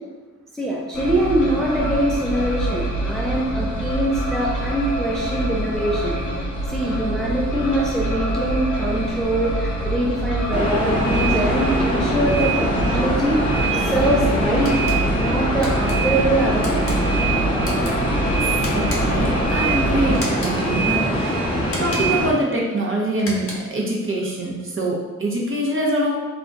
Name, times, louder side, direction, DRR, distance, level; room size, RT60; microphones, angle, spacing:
voice 1, 0.5-6.2 6.7-14.8 15.2-16.9, right 1 dB, ahead, -3 dB, 0.3 m, -23 dB
sound 1, 0.9-20.2, right 1 dB, 85° left, 0.6 m, -26 dB
sound 2, 10.5-22.3, right 1 dB, 20° left, 0.7 m, -22 dB
sound 3, 14.6-15.0 15.6-16.0 16.6-17.0 17.6-17.9 18.6-19.2 20.1-20.6 21.6-22.2 23.1-23.8, left 1 dB, 50° left, 0.7 m, -33 dB
voice 2, 18.7-21.4 21.8-26.1, right 1 dB, 45° right, -2 dB, 0.6 m, -24 dB
2.3 x 2.1 x 3.8 m, 1.3 s
wide cardioid pair, 100°, 29 cm